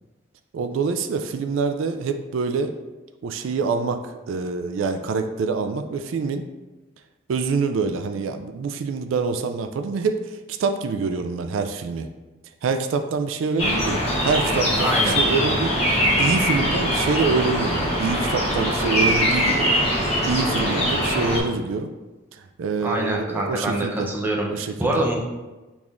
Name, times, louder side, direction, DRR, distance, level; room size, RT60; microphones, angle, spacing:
voice 1, 0.5-2.7 3.2-6.4 7.3-12.1 12.6-19.7 20.2-21.9 22.3-24.1 24.5-25.0, right 4 dB, 80° right, 8 dB, 0.3 m, -26 dB
sound 1, 13.6-21.4, equal, 30° left, 1.1 m, -22 dB
voice 2, 14.8-15.2 22.8-25.1, right 1 dB, 10° right, -3 dB, 0.6 m, -25 dB
6.0 x 3.5 x 2.4 m, 1.2 s
head